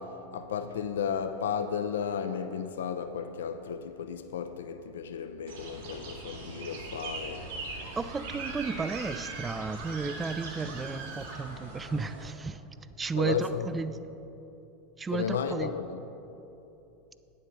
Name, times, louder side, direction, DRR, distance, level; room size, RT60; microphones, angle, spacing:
voice 1, 0.0-7.4 13.1-13.7 15.1-16.0, left 7 dB, 80° left, 8 dB, 0.4 m, -34 dB
sound 1, 5.5-12.3, right 3 dB, 85° right, 2.2 m, -42 dB
Screaming, 7.4-11.9, right 4 dB, 65° right, 2.0 m, -43 dB
voice 2, 8.0-12.6 13.0-13.9 15.0-15.7, right 4 dB, 20° right, 13 dB, 0.4 m, -33 dB
9.0 x 7.6 x 5.2 m, 2.9 s
hypercardioid pair, 100°, 0 cm